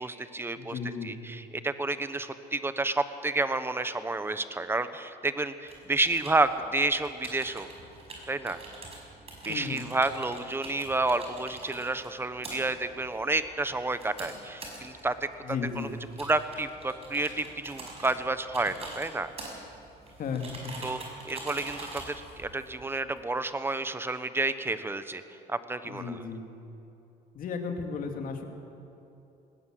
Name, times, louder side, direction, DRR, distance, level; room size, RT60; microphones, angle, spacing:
voice 1, 0.0-7.7 8.3-8.6 9.4-15.3 15.8-15.9 16.2-19.3 20.8-25.2 25.5-26.2, right 2 dB, 15° right, 12 dB, 1.1 m, -30 dB
voice 2, 0.6-1.1 9.5-9.9 15.4-15.9 20.2-20.7 25.8-26.4 27.3-28.4, left 5 dB, 55° left, 4 dB, 2.5 m, -34 dB
sound 1, 5.7-23.2, right 2 dB, 35° right, 5.7 m, -45 dB
19.5 x 18.0 x 7.7 m, 2.9 s
cardioid pair, 110°, 17 cm